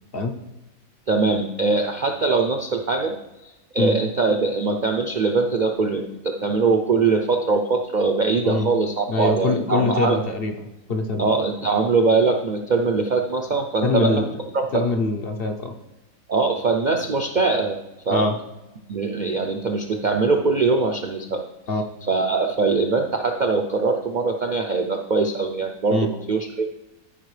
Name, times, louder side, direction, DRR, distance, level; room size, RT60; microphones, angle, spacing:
voice 1, 1.1-3.2 3.4-10.2 11.2-14.2 14.5-14.8 16.3-17.8 18.1-18.3 18.9-21.4 22.1-26.7, right 4 dB, 55° right, 4 dB, 0.5 m, -22 dB
voice 2, 9.1-11.3 13.8-14.3 14.7-15.7 18.1-18.3 21.7-21.8 25.9-26.1, left 3 dB, 50° left, 4 dB, 0.9 m, -23 dB
13.5 x 5.2 x 3.2 m, 1.0 s
omnidirectional pair, 1.5 m